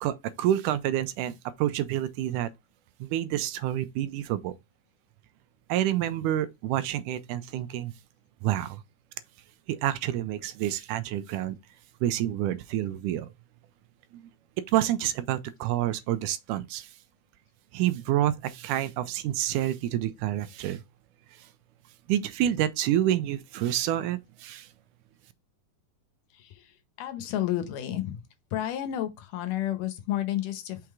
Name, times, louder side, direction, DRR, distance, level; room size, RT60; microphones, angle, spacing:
voice 1, 0.0-2.5 3.0-4.6 5.7-7.9 8.4-8.8 9.7-11.6 12.0-13.3 14.1-14.3 14.7-16.9 17.7-20.8 21.4-21.5 22.1-24.7, right 12 dB, 85° right, 2.1 m, -28 dB
voice 2, 27.0-28.2 28.5-30.8, left 12 dB, 90° left, 2.5 m, -31 dB
5.9 x 3.7 x 4.6 m
omnidirectional pair, 3.6 m